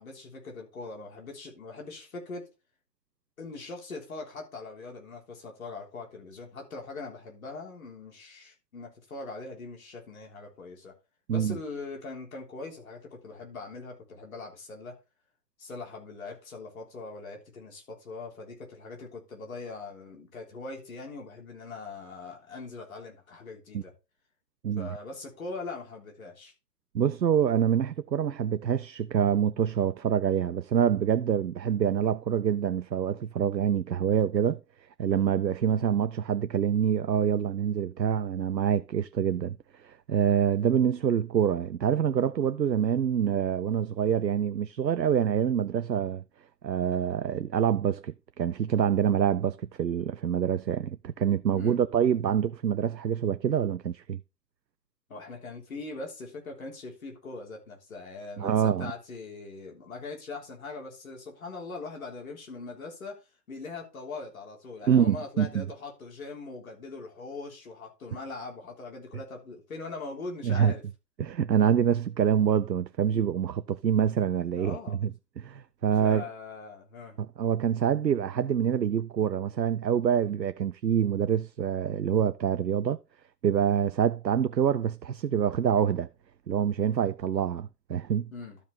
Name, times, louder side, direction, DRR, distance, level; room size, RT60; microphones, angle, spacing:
voice 1, 0.0-2.4 3.4-10.9 11.3-14.9 15.6-23.9 24.8-26.5 51.6-51.8 55.1-63.2 63.5-70.8 73.1-73.2 74.1-74.2 74.5-75.0 76.0-77.2 88.3-88.6, left 3 dB, 55° left, 3.6 m, -41 dB
voice 2, 26.9-34.6 35.0-46.2 46.6-54.2 58.4-58.9 64.8-65.6 70.4-70.7 71.2-75.1 75.4-76.3 77.2-83.0 83.4-86.1 86.5-88.3, right 8 dB, 85° right, 0.6 m, -26 dB
12.5 x 5.2 x 4.1 m
figure-of-eight pair, 130°, 50 cm